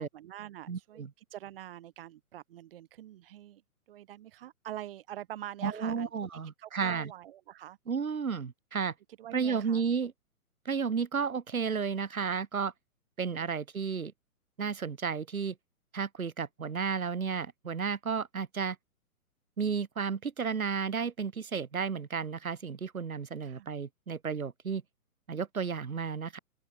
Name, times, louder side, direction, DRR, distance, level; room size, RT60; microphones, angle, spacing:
voice 1, 0.0-3.6 3.9-6.1 6.6-7.8 9.2-9.8 23.4-23.7, right 12 dB, 40° right, 2.7 m, -45 dB
voice 2, 0.7-1.1 5.6-7.1 7.9-8.9 9.3-10.1 10.7-12.7 13.2-14.1 14.6-15.5 15.9-18.8 19.6-24.8 25.3-26.4, right 6 dB, 65° right, 4.1 m, -32 dB
open air
figure-of-eight pair, 130°, 45 cm